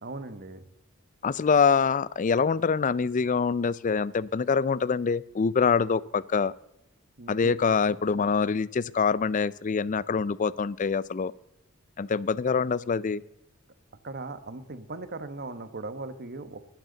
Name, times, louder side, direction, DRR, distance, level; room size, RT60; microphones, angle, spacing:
voice 1, 0.0-0.6 7.2-7.6 14.0-16.6, right 3 dB, 50° right, 12 dB, 1.2 m, -38 dB
voice 2, 1.2-6.5 7.3-11.3 12.0-13.2, left 5 dB, 40° left, 21 dB, 0.4 m, -25 dB
21.0 x 12.0 x 3.9 m, 0.90 s
head